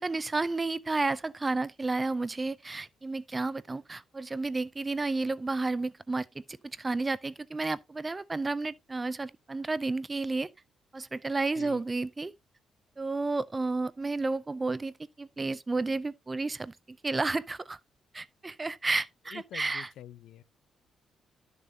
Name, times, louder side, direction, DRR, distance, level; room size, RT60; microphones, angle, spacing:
voice 1, 0.0-10.5 10.9-12.3 13.0-17.8 18.1-19.9, right 3 dB, 15° right, 0.5 m, -32 dB
voice 2, 19.3-20.4, left 11 dB, 85° left, 0.6 m, -46 dB
12.0 x 6.9 x 2.7 m
cardioid pair, 160°, 0 cm